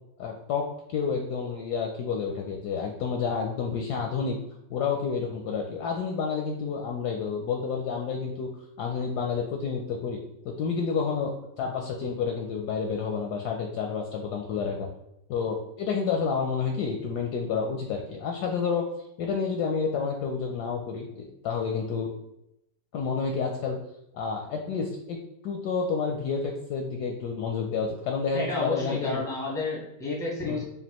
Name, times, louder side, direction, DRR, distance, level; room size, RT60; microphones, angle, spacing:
voice 1, 0.2-4.4 4.7-8.5 8.8-10.2 10.4-14.9 15.3-18.9 19.2-22.1 22.9-23.8 24.1-25.2 25.4-29.2 30.5-30.7, left 5 dB, 75° left, 1 dB, 0.9 m, -29 dB
voice 2, 28.3-30.7, left 3 dB, 5° left, -4 dB, 0.4 m, -31 dB
5.2 x 2.4 x 2.9 m, 0.82 s
omnidirectional pair, 2.1 m